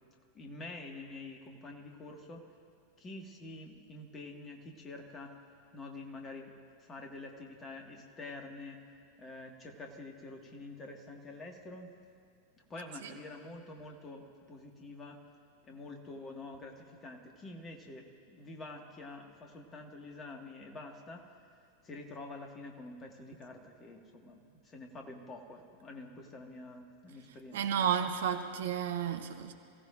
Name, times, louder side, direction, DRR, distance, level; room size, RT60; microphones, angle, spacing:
voice 1, 0.3-2.4 3.0-5.3 5.7-6.5 6.8-8.8 9.2-11.9 12.7-15.2 15.6-21.2 21.8-27.6, left 2 dB, 20° left, 2 dB, 1.8 m, -47 dB
voice 2, 27.5-29.5, right 8 dB, 60° right, 7 dB, 0.9 m, -32 dB
26.5 x 16.0 x 2.6 m, 2.2 s
figure-of-eight pair, 90°, 0 cm